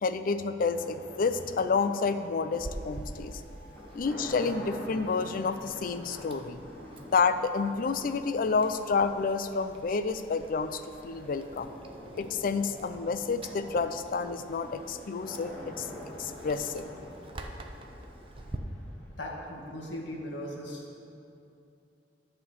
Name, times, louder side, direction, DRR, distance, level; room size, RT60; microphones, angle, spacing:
voice 1, 0.0-3.3 3.9-6.6 7.1-11.7 12.1-15.9 16.2-16.9, left 4 dB, 50° left, 10 dB, 0.4 m, -29 dB
sound 1, 0.8-19.8, left 1 dB, 10° left, 1.9 m, -47 dB
Chewing mastication, 2.5-18.6, right 1 dB, 30° right, 0.6 m, -48 dB
voice 2, 19.2-20.8, left 1 dB, 90° left, -2 dB, 1.6 m, -38 dB
11.0 x 4.3 x 7.0 m, 2.7 s
head